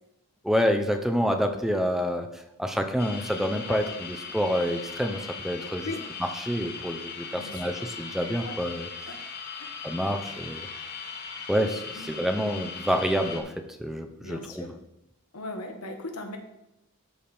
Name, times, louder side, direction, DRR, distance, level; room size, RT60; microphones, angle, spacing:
voice 1, 0.4-5.9 6.2-8.9 9.8-10.7 11.5-13.5 13.8-14.7, equal, ahead, 5 dB, 0.6 m, -28 dB
sound 1, 3.0-13.4, left 5 dB, 45° left, 1.1 m, -39 dB
voice 2, 14.2-14.7 15.3-16.4, left 2 dB, 85° left, 4 dB, 1.3 m, -37 dB
12.5 x 4.3 x 3.5 m, 0.87 s
head